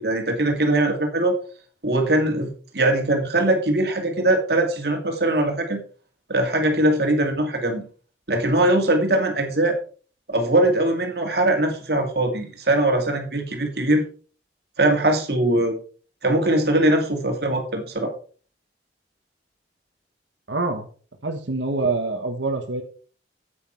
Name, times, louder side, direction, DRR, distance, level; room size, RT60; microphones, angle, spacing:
voice 1, 0.0-1.4 1.8-5.8 6.3-7.8 8.3-9.8 10.3-14.0 14.8-15.7 16.2-18.1, right 1 dB, 60° right, 4 dB, 2.3 m, -21 dB
voice 2, 20.5-20.9 21.2-22.8, right 3 dB, 85° right, 5 dB, 1.3 m, -25 dB
9.4 x 8.5 x 4.4 m, 0.41 s
head